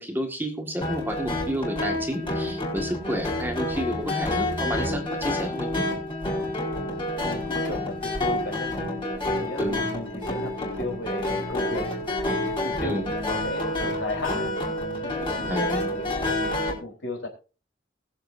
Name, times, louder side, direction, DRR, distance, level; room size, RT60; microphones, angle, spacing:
voice 1, 0.0-5.8 9.6-9.8 12.8-13.0 15.5-16.0, equal, 10° right, 3 dB, 1.8 m, -31 dB
sound 1, 0.8-16.7, left 1 dB, 25° left, 5.0 m, -28 dB
voice 2, 7.2-8.8 9.3-11.9 12.6-14.5 15.0-17.3, left 2 dB, 65° left, 1 dB, 3.9 m, -35 dB
21.5 x 7.7 x 2.6 m, 0.34 s
head